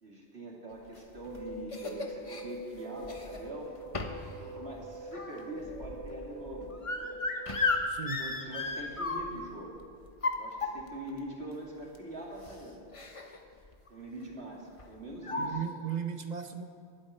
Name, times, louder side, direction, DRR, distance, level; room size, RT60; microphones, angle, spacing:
voice 1, 0.0-3.7 4.4-7.1 8.2-9.8 10.4-12.8 13.9-15.6, right 1 dB, 75° right, -2 dB, 2.7 m, -43 dB
sound 1, 1.0-2.4 3.0-3.5 3.9-4.3 4.6-9.5 10.1-11.1 12.0-12.1 12.4-12.6 12.9-13.4 13.6-13.9 14.8-14.9 15.2-15.5, left 3 dB, 30° left, 1.0 m, -34 dB
sound 2, 1.2-4.6 4.8-7.7, right 4 dB, 30° right, 1.8 m, -44 dB
voice 2, 7.9-8.3 15.4-16.6, right 7 dB, 45° right, 8 dB, 0.7 m, -36 dB
19.0 x 12.5 x 4.3 m, 2.4 s
omnidirectional pair, 1.1 m